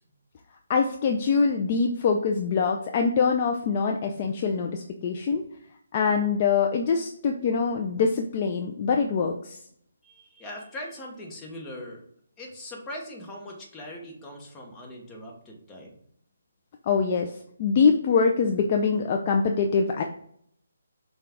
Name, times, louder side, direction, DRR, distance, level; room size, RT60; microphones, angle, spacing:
voice 1, 0.7-5.4 5.9-9.6 16.9-17.3 17.6-20.0, left 5 dB, 35° left, 3 dB, 0.4 m, -24 dB
voice 2, 10.0-12.0 12.4-16.0, left 1 dB, 15° left, 0 dB, 0.9 m, -41 dB
6.5 x 2.3 x 3.4 m, 0.67 s
hypercardioid pair, 155°, 0 cm